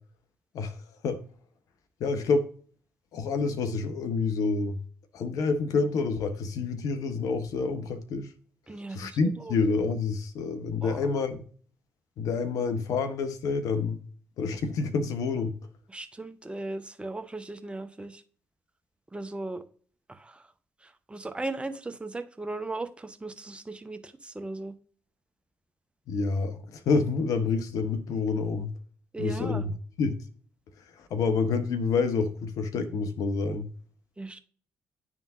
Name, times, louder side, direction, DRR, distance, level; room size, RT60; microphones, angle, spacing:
voice 1, 2.0-2.5 3.1-4.8 5.1-8.3 8.9-11.4 12.2-14.0 14.4-15.5 26.1-28.7 29.2-29.7 30.0-30.2 31.0-33.7, left 4 dB, 65° left, 0.8 m, -28 dB
voice 2, 8.7-9.6 10.8-11.1 15.9-18.2 19.1-19.6 20.1-20.5 20.8-24.7 29.1-29.6 34.2-34.4, right 2 dB, 15° right, 0.7 m, -37 dB
10.5 x 3.6 x 2.4 m
figure-of-eight pair, 40°, 6 cm